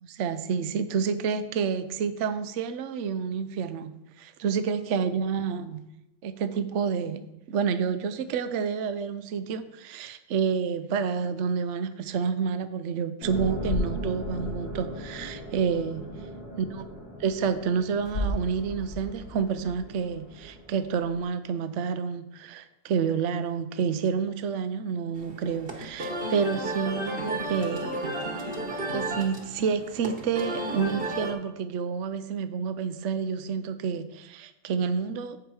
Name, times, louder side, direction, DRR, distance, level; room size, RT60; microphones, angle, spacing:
voice 1, 0.0-3.9 4.2-5.8 6.2-16.1 16.6-16.8 17.2-27.9 28.9-35.4, right 6 dB, 60° right, 11 dB, 0.9 m, -29 dB
sound 1, 13.2-21.2, left 1 dB, 80° left, 3.6 m, -36 dB
sound 2, 25.2-31.3, right 1 dB, 40° right, 1.4 m, -33 dB
14.5 x 4.9 x 4.8 m, 0.91 s
omnidirectional pair, 1.6 m